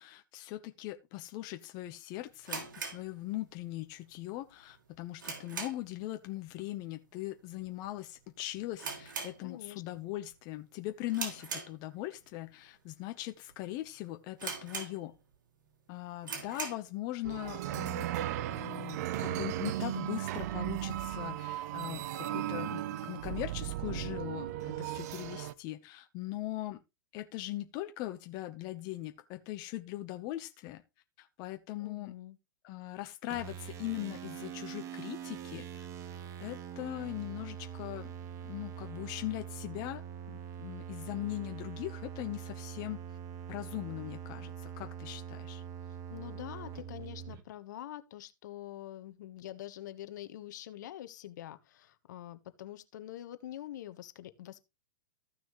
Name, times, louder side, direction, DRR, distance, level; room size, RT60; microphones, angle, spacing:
voice 1, 0.0-15.2 15.9-18.1 18.5-26.8 27.1-30.8 31.2-32.1 32.6-35.9 36.4-38.1 38.4-40.0 40.3-43.2 43.5-45.6, left 16 dB, 40° left, 0.9 m, -40 dB
sound 1, 2.4-3.8 4.1-4.2 4.7-6.0 6.3-6.6 6.9-7.0 7.7-8.0 8.2-8.3 8.7-9.9 10.3-10.6 11.1-12.2 12.8-12.9 13.5-13.6 13.8-13.9 14.4-15.3 15.7-15.8 16.2-16.9, right 5 dB, 80° right, 3.5 m, -41 dB
voice 2, 9.4-9.8 31.8-32.4 46.1-54.6, left 13 dB, 60° left, 1.3 m, -45 dB
sound 2, 17.2-25.5, right 13 dB, 55° right, 0.7 m, -36 dB
sound 3, 33.3-47.4, right 8 dB, 30° right, 1.3 m, -44 dB
14.5 x 6.2 x 3.1 m
hypercardioid pair, 135°, 11 cm